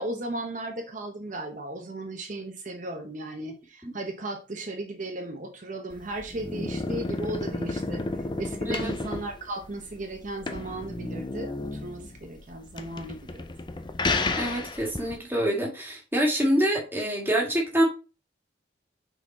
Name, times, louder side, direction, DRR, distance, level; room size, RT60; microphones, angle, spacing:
voice 1, 0.0-8.0 8.4-13.5, right 1 dB, 40° right, 4 dB, 0.8 m, -36 dB
sound 1, 5.9-15.2, left 2 dB, 25° left, 0.5 m, -32 dB
voice 2, 14.4-17.8, right 1 dB, 10° right, -1 dB, 1.7 m, -26 dB
6.1 x 4.2 x 4.2 m, 0.32 s
head